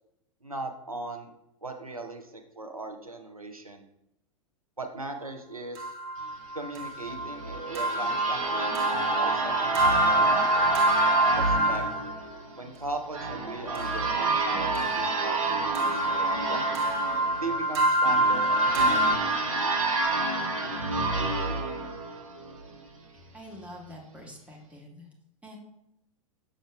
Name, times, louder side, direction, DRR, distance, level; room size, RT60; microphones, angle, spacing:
voice 1, 0.4-1.3 1.6-3.8 4.8-5.9 6.5-10.8 11.4-11.8 12.6-16.7 17.4-19.6, right 2 dB, 90° right, 5 dB, 0.7 m, -39 dB
sound 1, 5.7-12.2 13.7-19.2, right 1 dB, 50° right, 1.1 m, -26 dB
sound 2, 7.1-22.7, right 3 dB, 70° right, 1.0 m, -29 dB
voice 2, 23.3-25.1 25.4-25.6, equal, 5° right, -1 dB, 1.3 m, -45 dB
6.4 x 6.3 x 2.3 m, 0.82 s
figure-of-eight pair, 95°, 18 cm